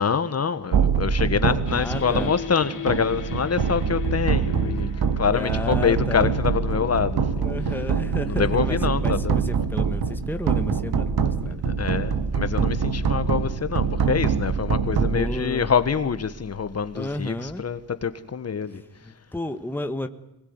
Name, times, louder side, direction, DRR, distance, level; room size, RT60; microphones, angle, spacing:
voice 1, 0.0-7.4 8.3-9.4 11.6-18.8, left 6 dB, 40° left, 1.6 m, -25 dB
sound 1, 0.7-16.0, right 6 dB, 80° right, 2.3 m, -25 dB
sound 2, 1.7-11.0, left 9 dB, 60° left, 2.0 m, -38 dB
voice 2, 1.7-2.3 5.3-6.4 7.4-11.6 15.1-15.7 16.9-17.6 19.0-20.1, left 1 dB, 5° left, 1.5 m, -32 dB
25.5 x 20.5 x 9.7 m
wide cardioid pair, 145°, 37 cm